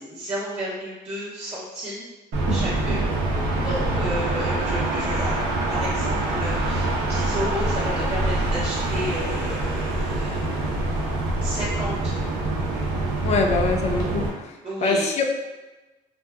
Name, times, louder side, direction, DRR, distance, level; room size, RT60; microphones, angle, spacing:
voice 1, 0.0-2.1 2.5-3.1 3.5-10.4 11.4-12.2 14.6-15.1, equal, 30° right, -9 dB, 0.6 m, -32 dB
sound 1, 2.3-14.3, right 2 dB, 75° right, 0.6 m, -25 dB
voice 2, 13.2-14.2 14.8-15.2, left 4 dB, 40° left, 3 dB, 0.4 m, -23 dB
2.7 x 2.3 x 2.3 m, 1.1 s
cardioid pair, 110°, 17 cm